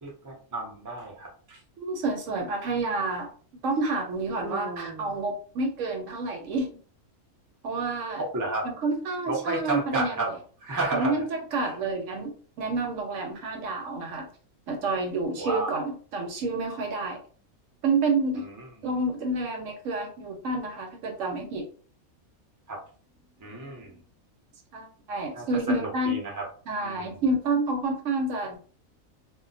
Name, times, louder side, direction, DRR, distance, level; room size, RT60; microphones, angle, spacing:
voice 1, 0.0-1.6 4.4-5.1 8.2-8.6 9.3-10.3 10.6-11.2 11.6-11.7 15.4-15.8 18.4-18.9 22.7-22.8 23.4-24.0 25.3-26.5 26.8-27.2, right 2 dB, 20° right, 0 dB, 0.5 m, -32 dB
voice 2, 1.8-3.3 3.6-6.7 7.6-8.2 8.6-10.2 10.9-14.3 14.7-17.2 17.8-18.5 18.8-21.7 24.7-26.2 26.7-28.6, right 3 dB, 70° right, 4 dB, 0.9 m, -29 dB
2.3 x 2.1 x 3.8 m, 0.43 s
omnidirectional pair, 1.5 m